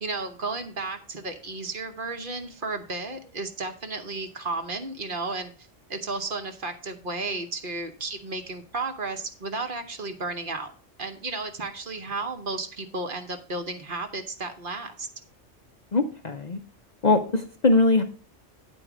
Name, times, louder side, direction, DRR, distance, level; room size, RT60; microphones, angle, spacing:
voice 1, 0.0-10.7 11.0-15.1, right 3 dB, 45° right, 6 dB, 1.1 m, -33 dB
voice 2, 15.9-16.6 17.0-18.0, left 3 dB, 40° left, 6 dB, 0.7 m, -21 dB
9.5 x 4.5 x 6.0 m, 0.38 s
omnidirectional pair, 1.3 m